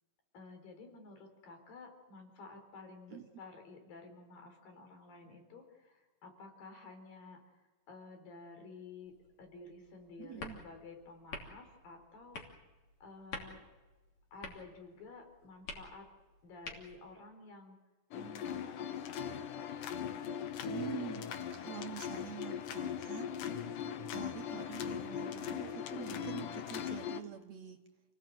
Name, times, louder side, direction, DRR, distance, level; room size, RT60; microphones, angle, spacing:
voice 1, 0.3-7.6 7.9-12.4 13.0-13.6 14.3-16.1 16.4-17.8 18.1-19.2, left 3 dB, 90° left, 4 dB, 5.9 m, -52 dB
sound 1, 9.1-17.2, left 3 dB, 55° left, 4.1 m, -50 dB
voice 2, 10.2-10.6 20.7-23.8 24.1-27.8, right 9 dB, 65° right, 6 dB, 2.1 m, -47 dB
sound 2, 18.1-27.2, left 8 dB, 75° left, 2.6 m, -39 dB
29.0 x 18.0 x 7.8 m, 1.2 s
omnidirectional pair, 3.9 m